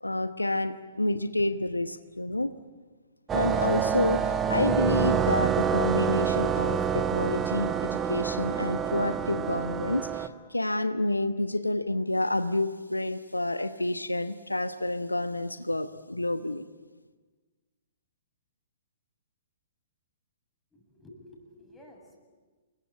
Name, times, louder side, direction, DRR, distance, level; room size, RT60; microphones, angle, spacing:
voice 1, 0.0-2.5 3.3-16.6, left 1 dB, 85° left, 11 dB, 1.1 m, -29 dB
sound 1, 3.3-10.3, right 7 dB, 15° right, 1.2 m, -27 dB
voice 2, 20.7-22.2, left 1 dB, 5° left, 0 dB, 7.3 m, -52 dB
28.5 x 22.5 x 8.7 m, 1.4 s
figure-of-eight pair, 115°, 0 cm